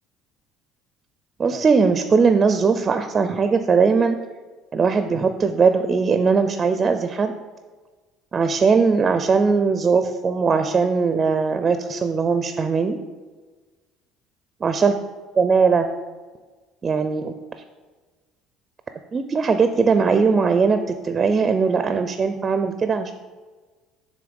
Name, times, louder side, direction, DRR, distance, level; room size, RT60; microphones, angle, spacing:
voice 1, 1.4-4.2 4.7-7.3 8.3-13.0 14.6-14.9 15.4-15.9 16.8-17.3 19.1-23.1, right 5 dB, 30° right, 8 dB, 0.4 m, -19 dB
7.1 x 3.1 x 5.1 m, 1.4 s
cardioid pair, 105°, 0 cm